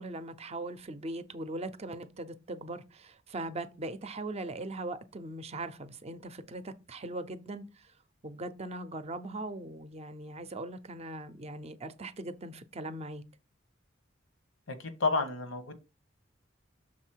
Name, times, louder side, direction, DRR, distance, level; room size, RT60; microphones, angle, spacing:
voice 1, 0.0-7.9 8.2-13.2, right 2 dB, 35° right, 0.6 m, -40 dB
voice 2, 14.7-15.8, left 3 dB, 90° left, 1.1 m, -31 dB
6.1 x 4.1 x 4.5 m
head